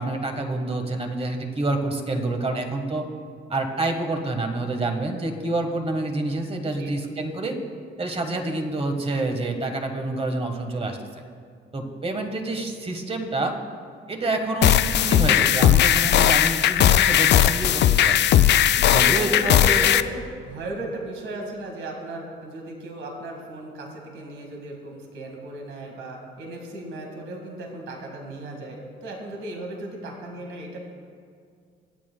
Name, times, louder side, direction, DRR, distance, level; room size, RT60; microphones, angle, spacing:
voice 1, 0.0-3.1 3.5-7.6 8.0-11.0 11.7-13.6 14.1-18.2 18.9-19.9, right 2 dB, 30° right, 4 dB, 1.5 m, -27 dB
voice 2, 6.6-7.1 18.7-30.8, right 2 dB, 75° right, 1 dB, 2.0 m, -36 dB
sound 1, 14.6-20.0, left 11 dB, 60° left, 0.4 m, -18 dB
23.0 x 8.6 x 2.3 m, 2.2 s
cardioid pair, 90°, 20 cm